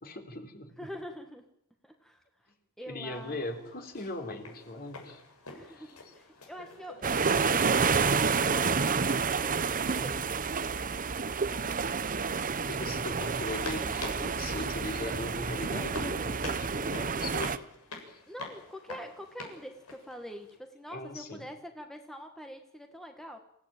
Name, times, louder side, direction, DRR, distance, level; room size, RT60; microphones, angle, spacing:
voice 1, 0.0-0.7 2.9-5.2 5.7-6.1 12.7-17.6 18.1-18.2 20.9-21.4, left 1 dB, 45° left, 4 dB, 3.9 m, -39 dB
voice 2, 0.8-1.5 1.8-2.2 2.8-3.4 5.5-10.4 18.3-23.4, equal, ahead, 4 dB, 1.6 m, -45 dB
sound 1, 3.1-20.6, left 3 dB, 85° left, 7.2 m, -49 dB
sound 2, 7.0-17.6, right 5 dB, 40° right, 0.9 m, -29 dB
28.0 x 16.5 x 9.1 m, 0.80 s
head